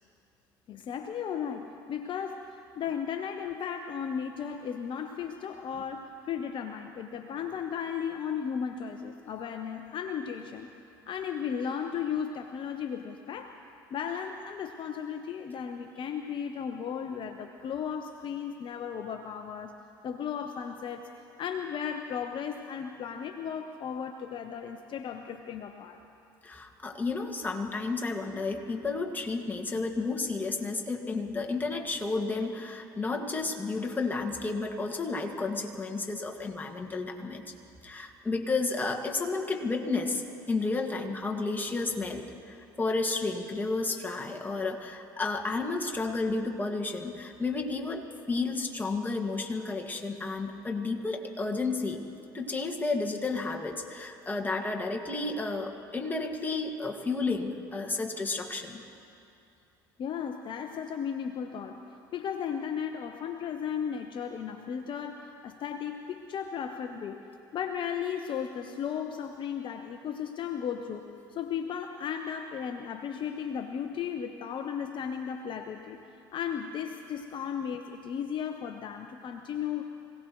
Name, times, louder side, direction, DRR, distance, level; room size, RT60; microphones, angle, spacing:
voice 1, 0.7-10.7 11.1-13.6 13.9-19.8 20.0-21.1 21.4-26.0 60.0-67.2 67.5-79.8, left 7 dB, 45° left, 6 dB, 0.8 m, -35 dB
voice 2, 26.4-37.5 37.8-52.0 52.3-58.8, left 3 dB, 15° left, 1 dB, 2.0 m, -32 dB
25.5 x 17.5 x 3.2 m, 2.7 s
hypercardioid pair, 70°, 11 cm